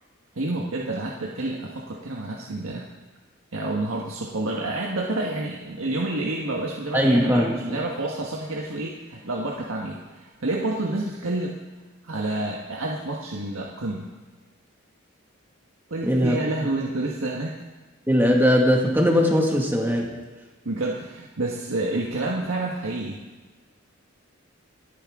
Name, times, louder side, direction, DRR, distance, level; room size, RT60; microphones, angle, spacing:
voice 1, 0.3-2.9 3.5-11.6 12.0-14.1 15.9-17.5 20.6-23.2, right 2 dB, 85° right, -2 dB, 1.5 m, -29 dB
voice 2, 6.9-7.5 16.0-16.4 18.1-20.1, equal, 10° right, 0 dB, 1.9 m, -20 dB
29.5 x 10.0 x 3.7 m, 1.3 s
head